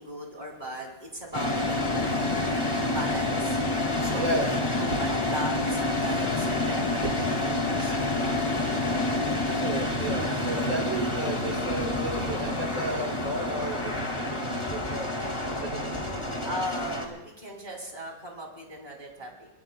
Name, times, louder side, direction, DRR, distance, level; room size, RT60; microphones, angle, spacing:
voice 1, 0.0-2.6 2.9-3.6 4.0-8.2 16.4-19.5, right 1 dB, 30° right, -1 dB, 3.5 m, -38 dB
sound 1, 1.3-17.0, left 2 dB, 20° left, 2.0 m, -28 dB
voice 2, 4.2-4.6 4.9-5.0 9.6-14.4 14.7-15.1 15.6-16.0, right 2 dB, 80° right, 2 dB, 2.1 m, -33 dB
24.0 x 20.5 x 2.2 m, 0.87 s
omnidirectional pair, 1.4 m